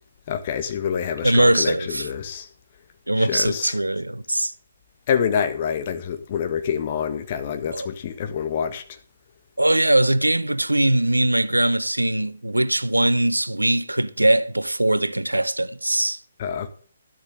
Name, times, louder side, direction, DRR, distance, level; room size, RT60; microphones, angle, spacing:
voice 1, 0.3-2.5 3.2-3.7 5.1-8.8 16.4-16.7, left 7 dB, 35° left, 1.6 m, -26 dB
voice 2, 1.2-2.1 3.1-4.5 7.7-7.9 9.6-16.2, right 1 dB, 85° right, 0.8 m, -21 dB
13.0 x 12.0 x 3.7 m
figure-of-eight pair, 135°, 0 cm